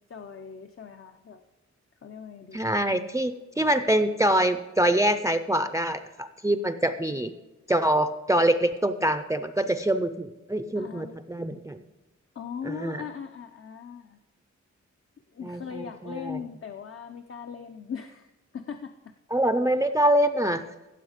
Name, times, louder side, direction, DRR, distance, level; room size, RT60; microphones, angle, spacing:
voice 1, 0.1-1.4 2.0-2.6 10.8-11.2 12.3-14.2 15.3-19.1, left 7 dB, 50° left, 6 dB, 0.7 m, -39 dB
voice 2, 2.5-7.3 7.7-11.8 12.6-13.0 15.4-16.4 19.3-20.6, right 1 dB, 10° right, 9 dB, 0.5 m, -25 dB
16.0 x 7.3 x 5.0 m, 1.1 s
wide cardioid pair, 110°, 29 cm